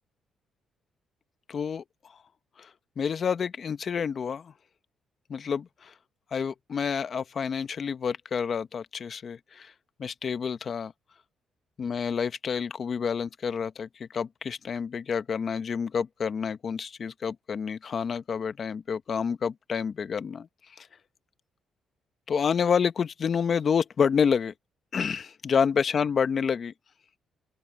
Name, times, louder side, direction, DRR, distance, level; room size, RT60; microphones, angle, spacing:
voice 1, 1.5-2.2 2.6-2.7 3.0-4.5 5.3-5.9 6.3-9.7 10.0-10.9 11.8-20.5 20.8-20.9 22.3-24.5 24.9-26.7, left 6 dB, 50° left, 1.1 m, -28 dB
open air
cardioid pair, 90°, 0 cm